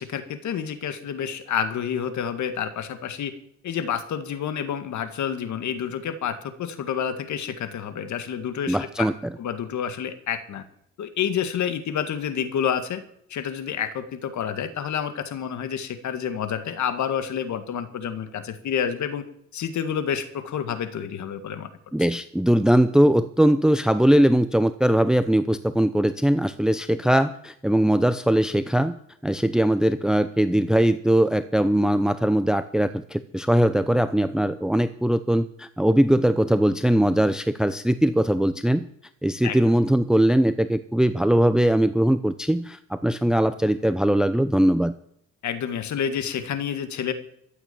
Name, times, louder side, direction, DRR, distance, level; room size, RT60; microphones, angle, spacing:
voice 1, 0.0-3.3 3.6-9.1 9.4-10.6 11.0-13.0 13.3-19.2 19.5-21.7 39.4-39.6 45.4-47.1, left 8 dB, 70° left, 10 dB, 2.0 m, -29 dB
voice 2, 8.7-9.1 21.9-29.0 29.2-38.9 39.2-44.9, right 1 dB, ahead, 12 dB, 0.7 m, -20 dB
14.0 x 8.7 x 8.6 m, 0.73 s
cardioid pair, 90°, 30 cm